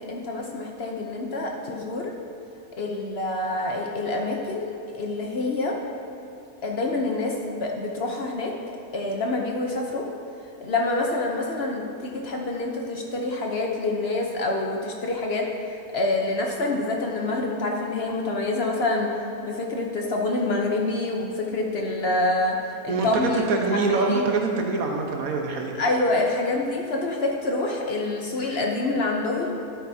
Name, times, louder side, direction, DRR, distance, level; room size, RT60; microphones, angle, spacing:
voice 1, 0.0-2.1 2.8-5.8 6.6-8.5 8.9-10.1 10.6-15.5 15.9-19.1 19.4-22.6 22.8-23.5 23.9-24.3 25.7-29.5, left 2 dB, 50° left, 0 dB, 0.9 m, -26 dB
voice 2, 22.9-25.8, right 3 dB, 75° right, 1 dB, 1.4 m, -24 dB
11.5 x 9.1 x 2.7 m, 2.7 s
omnidirectional pair, 1.5 m